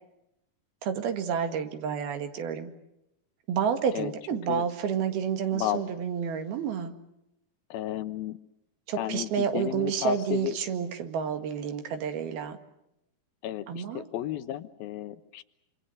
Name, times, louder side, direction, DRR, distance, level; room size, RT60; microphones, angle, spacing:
voice 1, 0.8-2.7 3.5-6.9 8.9-12.6 13.7-14.0, right 7 dB, 85° right, 7 dB, 3.9 m, -30 dB
voice 2, 3.9-4.6 5.5-5.8 7.7-8.4 9.0-10.6 13.4-15.4, left 13 dB, 85° left, 11 dB, 2.9 m, -33 dB
27.0 x 26.5 x 6.6 m, 0.87 s
omnidirectional pair, 4.2 m